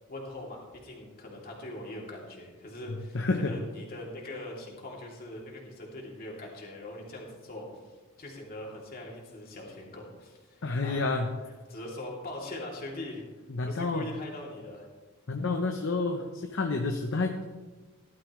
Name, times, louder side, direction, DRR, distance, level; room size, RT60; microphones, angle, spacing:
voice 1, 0.1-7.7 8.2-11.1 11.7-13.2 13.6-14.9, left 1 dB, 45° left, -2 dB, 2.9 m, -41 dB
voice 2, 3.1-3.6 10.6-11.3 13.5-14.1 15.3-17.4, left 3 dB, 60° left, 4 dB, 0.8 m, -29 dB
15.5 x 12.0 x 3.2 m, 1.3 s
head